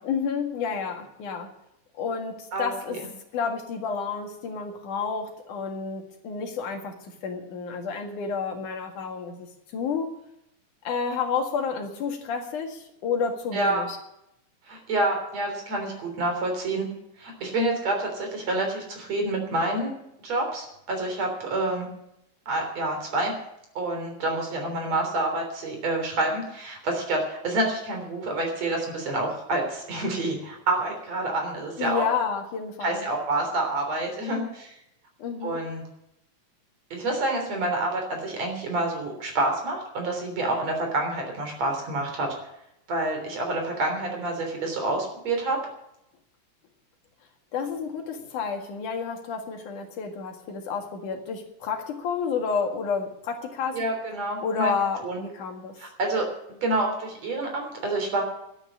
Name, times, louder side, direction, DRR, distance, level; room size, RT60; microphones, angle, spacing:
voice 1, 0.0-1.5 2.0-3.0 3.3-10.1 10.8-14.0 31.8-33.1 35.2-35.6 47.5-53.8 54.4-55.8, left 5 dB, 90° left, 3 dB, 3.4 m, -30 dB
voice 2, 2.5-3.0 13.5-13.8 14.7-16.9 17.2-21.9 22.5-23.3 23.8-32.0 32.8-34.8 35.4-35.8 36.9-42.3 42.9-45.6 53.7-54.7 55.0-55.2 55.8-56.3 56.6-58.2, right 2 dB, 60° right, 3 dB, 4.7 m, -28 dB
12.0 x 9.0 x 9.8 m, 0.80 s
omnidirectional pair, 3.5 m